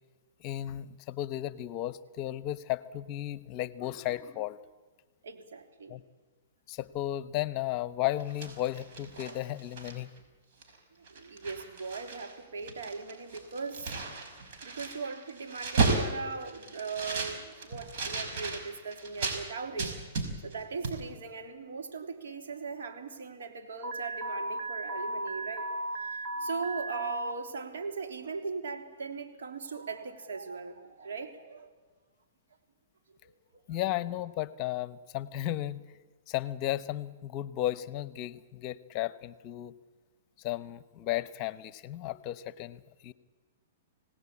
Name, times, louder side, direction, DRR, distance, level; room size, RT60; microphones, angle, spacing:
voice 1, 0.4-4.6 5.9-6.0 6.7-10.1 33.7-35.8 36.3-39.7 40.4-43.1, left 14 dB, 40° left, 16 dB, 1.0 m, -34 dB
voice 2, 5.2-6.0 11.1-13.9 14.6-20.0 20.4-25.7 26.0-31.7 33.2-33.8, right 4 dB, 75° right, 5 dB, 3.3 m, -39 dB
sound 1, 8.1-10.2 10.6-10.8 11.0-12.3 12.6-19.4 19.8-20.6 20.8-21.0, right 3 dB, 55° right, 5.5 m, -34 dB
Alarm, 23.8-27.3, right 1 dB, 35° right, 2.2 m, -35 dB
27.0 x 18.0 x 8.6 m, 1.3 s
hypercardioid pair, 125°, 0 cm